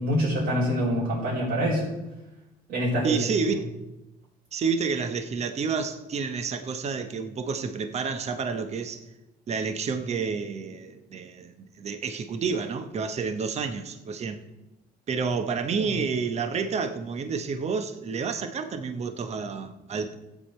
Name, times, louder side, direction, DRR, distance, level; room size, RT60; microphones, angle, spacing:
voice 1, 0.0-1.9 2.7-3.3 15.7-16.0, equal, 75° right, 4.0 m, -25 dB
voice 2, 3.0-3.7 4.5-9.0 9.5-14.4 15.1-20.2, right 5 dB, 40° right, 1.0 m, -29 dB
13.5 x 8.4 x 4.4 m
cardioid pair, 110°, 17 cm